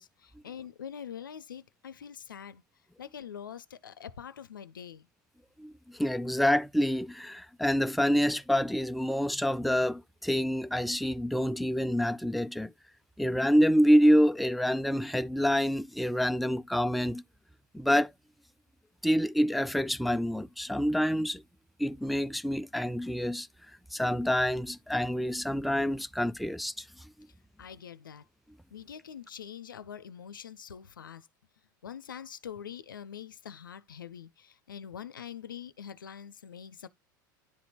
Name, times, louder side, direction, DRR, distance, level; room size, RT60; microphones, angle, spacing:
voice 1, 0.0-2.6 3.0-5.1 27.6-28.2 28.7-31.3 31.8-36.9, left 8 dB, 85° left, 0.6 m, -44 dB
voice 2, 5.6-12.7 13.2-17.2 17.7-18.1 19.0-21.4 21.8-23.5 23.9-26.8, equal, ahead, 0.4 m, -27 dB
10.5 x 4.3 x 2.8 m
hypercardioid pair, 80°, 11 cm